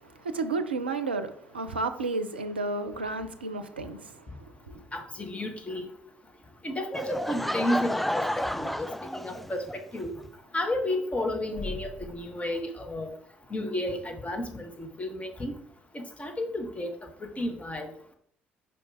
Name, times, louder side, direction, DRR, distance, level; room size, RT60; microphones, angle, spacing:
voice 1, 0.2-4.3 4.7-4.8, right 3 dB, 85° right, 0.5 m, -32 dB
voice 2, 4.9-5.9 6.6-8.9 9.1-10.1 10.5-13.1 13.5-15.5 15.9-16.9 17.2-17.9, left 1 dB, 25° left, 1.5 m, -32 dB
Laughter / Crowd, 6.9-9.8, left 1 dB, ahead, 0.3 m, -31 dB
5.0 x 4.8 x 4.8 m
figure-of-eight pair, 50°, 6 cm